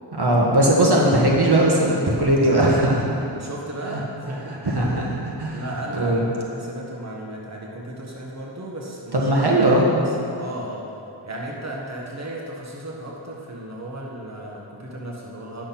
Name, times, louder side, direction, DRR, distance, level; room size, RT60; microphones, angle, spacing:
voice 1, 0.1-3.2 3.9-4.0 4.6-5.6 6.0-6.2 9.1-10.0, right 1 dB, 50° right, -3 dB, 1.6 m, -19 dB
voice 2, 3.3-4.6 5.5-9.3 9.7-10.8 11.2-15.7, right 1 dB, 35° right, -3 dB, 1.5 m, -35 dB
10.5 x 6.4 x 5.9 m, 2.7 s
wide cardioid pair, 50°, 49 cm